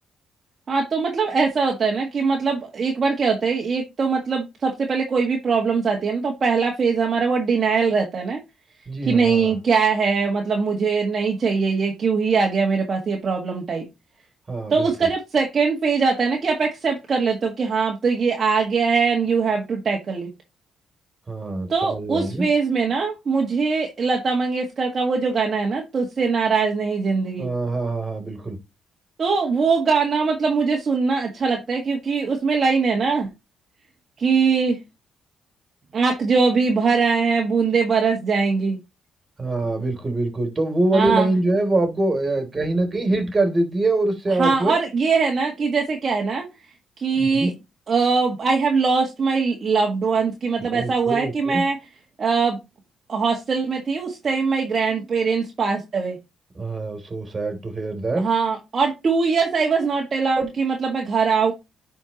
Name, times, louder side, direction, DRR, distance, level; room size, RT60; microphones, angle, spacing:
voice 1, 0.7-8.4 9.1-13.9 14.7-20.3 21.7-27.5 29.2-33.3 34.2-34.8 35.9-38.8 40.9-41.3 44.4-46.5 47.0-47.5 47.9-51.8 52.2-52.6 53.1-56.2 58.2-61.5, right 5 dB, 45° right, 1.7 m, -21 dB
voice 2, 8.9-9.6 14.5-14.9 21.3-22.5 27.4-28.6 39.4-44.7 47.1-47.5 50.6-51.6 56.5-58.3, right 2 dB, 30° right, 3.0 m, -24 dB
10.5 x 4.6 x 2.9 m
cardioid pair, 90°, 0 cm